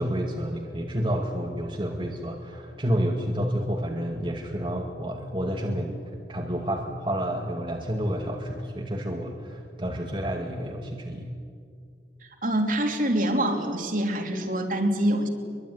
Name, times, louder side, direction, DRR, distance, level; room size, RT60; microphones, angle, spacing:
voice 1, 0.0-5.9 6.3-11.3, equal, 30° right, 1 dB, 2.1 m, -29 dB
voice 2, 12.2-15.3, right 1 dB, 50° right, 4 dB, 3.2 m, -25 dB
23.5 x 23.0 x 9.8 m, 2.2 s
head